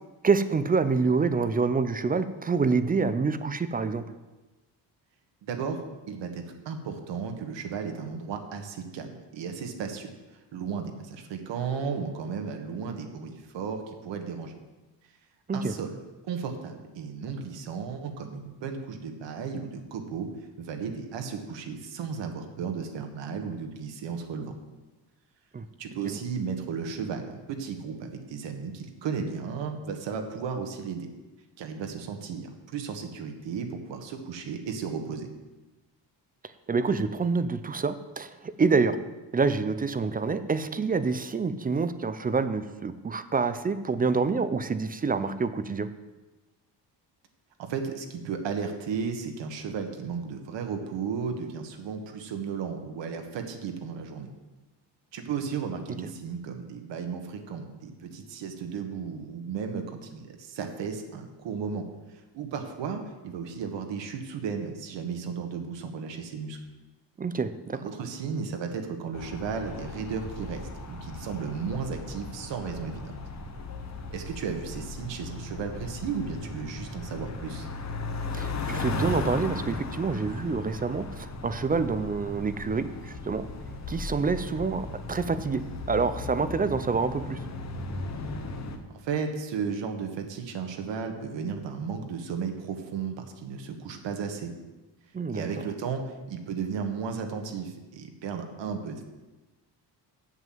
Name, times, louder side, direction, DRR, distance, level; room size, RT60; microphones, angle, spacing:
voice 1, 0.2-4.0 15.5-15.7 25.5-25.7 26.0-26.2 36.7-39.0 39.3-45.9 67.2-67.8 78.3-83.5 83.9-87.4 95.1-95.5, right 4 dB, 20° right, 13 dB, 0.4 m, -27 dB
voice 2, 5.4-5.8 6.1-14.6 15.5-16.0 16.2-20.3 20.6-24.6 25.8-31.1 31.6-35.3 47.6-54.3 55.1-61.8 62.1-66.6 67.7-73.1 74.1-77.7 88.9-94.5 95.3-99.0, right 6 dB, 75° right, 5 dB, 1.5 m, -34 dB
sound 1, 69.1-88.8, left 2 dB, 40° left, 1.1 m, -36 dB
8.0 x 7.4 x 7.6 m, 1.1 s
cardioid pair, 150°, 44 cm